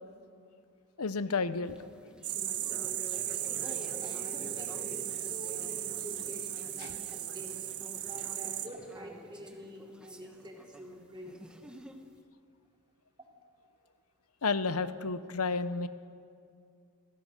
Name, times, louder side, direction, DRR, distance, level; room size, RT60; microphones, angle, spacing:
voice 1, 1.0-1.8 14.4-15.9, left 4 dB, 85° left, 13 dB, 0.9 m, -31 dB
sound 1, 1.7-12.2, equal, 5° right, 1.1 m, -49 dB
sound 2, 2.2-8.7, right 12 dB, 85° right, 1.3 m, -36 dB
voice 2, 3.6-6.4 6.8-7.6 8.0-11.4, equal, 20° right, -1 dB, 3.4 m, -47 dB
27.0 x 16.0 x 6.6 m, 2.4 s
head